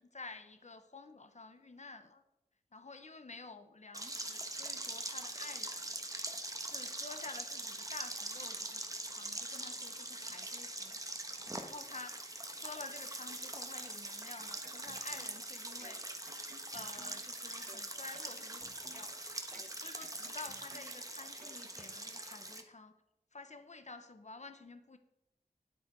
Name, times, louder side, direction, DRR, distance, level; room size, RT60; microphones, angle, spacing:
voice 1, 0.0-2.2 2.7-5.9 6.6-11.0 11.6-16.0 16.7-19.3 19.7-22.9 23.3-25.0, left 3 dB, 50° left, 9 dB, 1.1 m, -50 dB
sound 1, 3.9-22.6, right 1 dB, 20° right, 1.3 m, -43 dB
sound 2, 14.2-15.5 15.8-17.3 17.7-19.2 19.5-21.1 21.4-21.6, right 3 dB, 60° right, 1.4 m, -58 dB
9.8 x 8.3 x 4.7 m, 0.90 s
wide cardioid pair, 55°, 16 cm